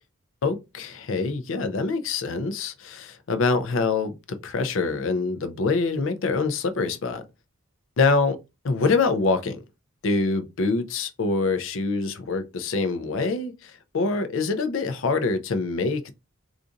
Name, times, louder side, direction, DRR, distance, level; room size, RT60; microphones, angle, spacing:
voice 1, 0.4-7.2 8.0-8.4 8.6-9.6 10.0-16.1, left 3 dB, 65° left, 0.5 m, -25 dB
3.9 x 2.5 x 2.5 m
head